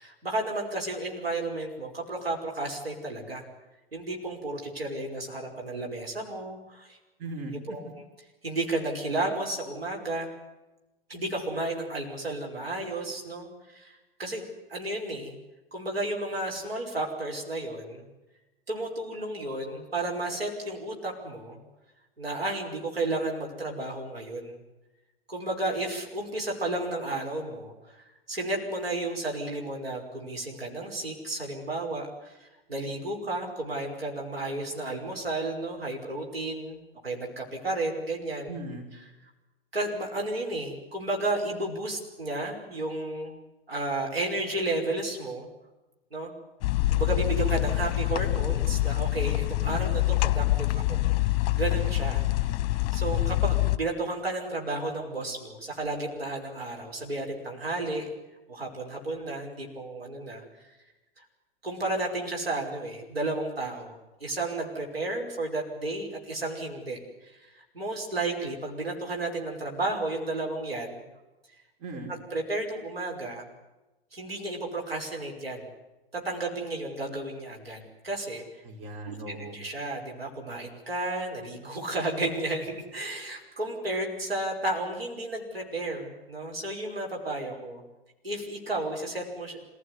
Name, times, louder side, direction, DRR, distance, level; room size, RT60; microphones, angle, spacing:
voice 1, 0.0-3.4 3.9-7.0 7.7-8.0 8.4-10.3 11.1-15.4 15.7-18.1 18.7-21.6 22.2-24.6 25.3-38.5 39.7-43.3 43.7-45.5 46.1-46.3 46.9-52.2 52.9-58.1 58.5-60.7 61.2-61.3 61.6-64.0 64.2-67.0 67.3-71.0 72.1-73.4 74.1-75.7 76.1-78.4 79.1-87.8 88.2-89.6, right 2 dB, 85° right, 0 dB, 5.7 m, -33 dB
voice 2, 7.2-7.8 38.5-38.9 71.8-72.1 78.6-79.6, right 2 dB, 40° right, 2 dB, 5.1 m, -38 dB
sound 1, 46.6-53.8, left 17 dB, 45° left, 0.9 m, -25 dB
27.0 x 16.5 x 9.8 m, 1.1 s
figure-of-eight pair, 100°, 29 cm